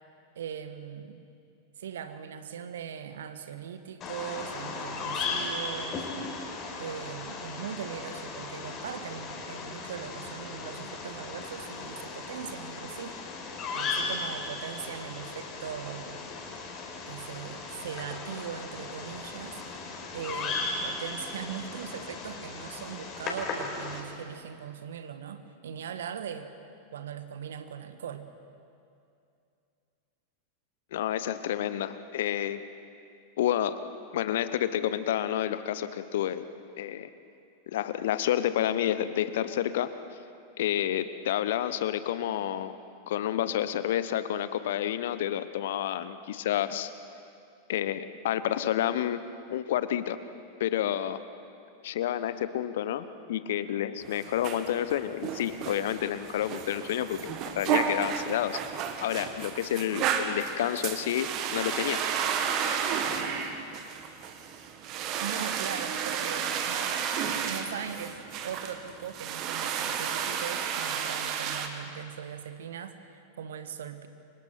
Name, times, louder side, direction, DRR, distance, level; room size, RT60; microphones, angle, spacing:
voice 1, 0.3-1.2 1.8-6.1 6.8-13.2 13.7-16.2 17.0-19.6 20.1-26.5 26.9-28.3 65.1-67.1 67.4-74.1, right 8 dB, 60° right, 10 dB, 1.6 m, -40 dB
Bird vocalization bird call bird song, 4.0-24.0, left 4 dB, 30° left, 5.1 m, -37 dB
voice 2, 30.9-32.6 33.4-33.8 34.1-36.4 36.8-37.1 37.7-39.9 40.6-42.8 43.1-46.9 47.7-50.2 50.6-51.2 51.8-58.6 59.0-62.0, left 11 dB, 55° left, 13 dB, 1.0 m, -29 dB
sound 1, 54.0-71.7, right 7 dB, 40° right, 2.0 m, -32 dB
30.0 x 24.5 x 6.0 m, 2.5 s
figure-of-eight pair, 90°, 0 cm